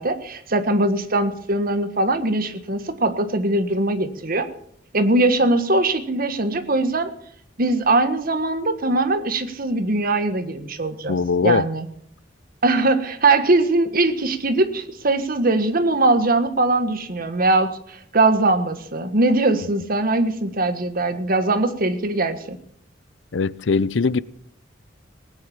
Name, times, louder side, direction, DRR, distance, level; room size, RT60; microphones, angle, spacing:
voice 1, 0.0-4.5 4.9-7.1 7.6-11.2 11.4-11.9 12.6-22.6, right 2 dB, 50° right, 1.5 m, -21 dB
voice 2, 11.1-11.6 23.3-24.2, left 4 dB, 75° left, 0.6 m, -20 dB
19.0 x 10.0 x 7.2 m
head